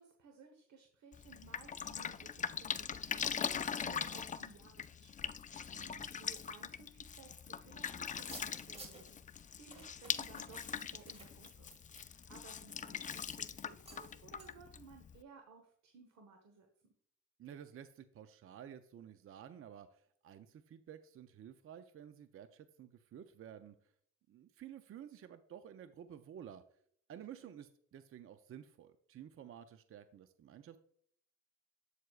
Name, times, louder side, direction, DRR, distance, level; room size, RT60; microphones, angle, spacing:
voice 1, 0.0-16.9 27.4-27.6, right 4 dB, 65° right, 4 dB, 1.2 m, -59 dB
Drip, 1.1-15.2, left 7 dB, 25° left, 0.3 m, -42 dB
voice 2, 5.7-6.1 17.4-23.9 24.3-26.6 27.1-30.8, right 9 dB, 45° right, 10 dB, 0.5 m, -52 dB
sound 1, 8.2-9.1 9.7-12.8 13.2-13.4 13.8-14.1 14.4-14.5, right 2 dB, 20° right, 2.0 m, -55 dB
8.1 x 7.6 x 2.4 m, 0.65 s
cardioid pair, 90°, 30 cm